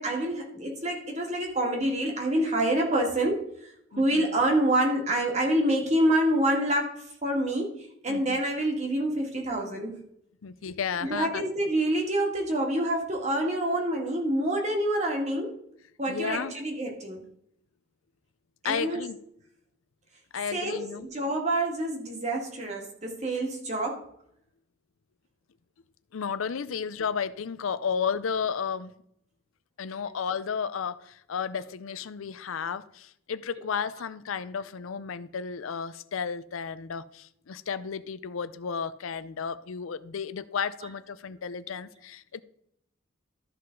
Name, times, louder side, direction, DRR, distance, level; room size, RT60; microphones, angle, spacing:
voice 1, 0.0-10.0 11.0-15.6 16.0-17.2 18.6-19.0 20.5-24.0, right 1 dB, 35° right, 1.9 m, -27 dB
voice 2, 3.9-4.2 8.1-8.4 10.4-11.4 16.1-16.5 18.6-19.2 20.3-21.1 26.1-28.9 29.8-42.4, left 6 dB, 90° left, 0.5 m, -33 dB
13.0 x 5.5 x 3.8 m
head